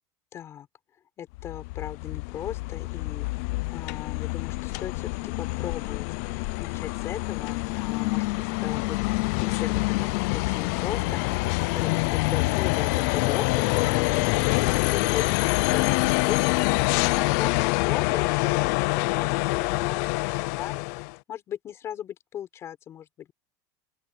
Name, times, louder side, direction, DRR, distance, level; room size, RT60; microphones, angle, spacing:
voice 1, 0.3-0.7 1.2-3.3 3.7-6.1 6.6-9.0 9.4-14.1 14.6-20.9 21.3-23.3, left 10 dB, 30° left, 4.7 m, -38 dB
sound 1, 1.3-21.1, left 25 dB, 65° left, 0.4 m, -26 dB
sound 2, 11.1-16.6, right 32 dB, 65° right, 6.5 m, -49 dB
open air
cardioid pair, 175°, 9 cm